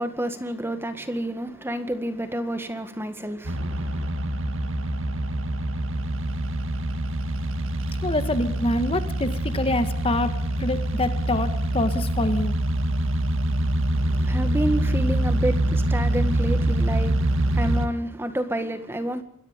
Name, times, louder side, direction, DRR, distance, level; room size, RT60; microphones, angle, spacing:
voice 1, 0.0-4.1 13.9-19.2, right 1 dB, 10° right, 1.8 m, -29 dB
sound 1, 3.4-17.9, right 1 dB, 60° right, 2.0 m, -25 dB
voice 2, 8.0-12.5, left 1 dB, 25° left, 1.6 m, -26 dB
27.0 x 22.0 x 5.2 m
head